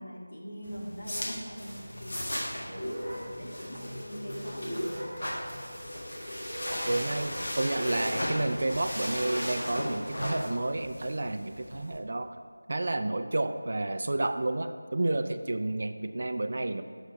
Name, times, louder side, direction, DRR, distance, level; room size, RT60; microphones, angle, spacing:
voice 1, 0.0-2.3 2.5-5.2, equal, 75° left, -2 dB, 1.8 m, -42 dB
sound 1, 0.6-12.0, equal, 55° left, 1.6 m, -37 dB
sound 2, 2.7-10.7, equal, 5° left, 1.1 m, -40 dB
voice 2, 6.9-12.3 12.7-16.8, right 2 dB, 35° right, 8 dB, 0.3 m, -30 dB
7.2 x 5.7 x 4.9 m, 2.2 s
figure-of-eight pair, 180°, 0 cm